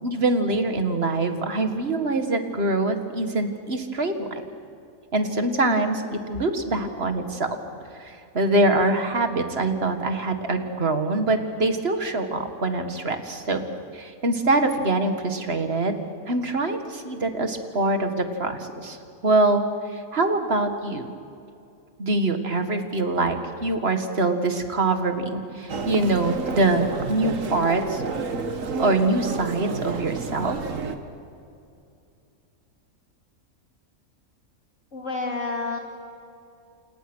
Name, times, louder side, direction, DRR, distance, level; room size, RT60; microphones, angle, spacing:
voice 1, 0.0-4.3 5.1-7.5 8.0-13.6 13.9-16.0 16.3-19.0 19.2-19.6 19.9-21.1 22.0-28.0 28.8-30.6, right 2 dB, 45° right, 7 dB, 2.0 m, -24 dB
Human voice, 25.7-31.0, right 4 dB, 65° right, 1.8 m, -30 dB
voice 2, 34.9-35.8, left 3 dB, 60° left, 1 dB, 3.0 m, -29 dB
29.0 x 28.0 x 6.3 m, 2.6 s
omnidirectional pair, 1.5 m